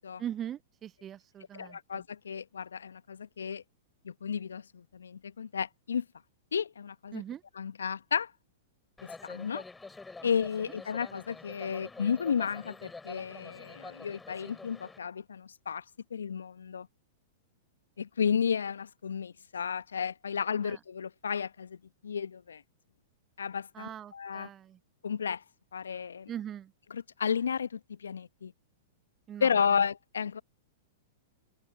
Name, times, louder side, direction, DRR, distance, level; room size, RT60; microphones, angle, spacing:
voice 1, 0.2-2.0 7.1-7.4 10.2-10.3 10.6-10.7 20.6-20.8 23.7-24.8 26.3-26.7 29.3-29.5, right 10 dB, 25° right, 0.7 m, -41 dB
voice 2, 1.5-3.6 4.0-6.0 6.5-7.2 7.6-8.3 9.0-9.6 10.2-15.8 16.1-16.9 18.0-21.8 22.0-22.6 23.4-24.5 25.0-25.4 25.7-26.3 26.9-28.5 29.4-30.4, left 7 dB, 75° left, 1.1 m, -33 dB
sound 1, 9.0-15.0, left 3 dB, 10° left, 5.7 m, -47 dB
open air
figure-of-eight pair, 100°, 0 cm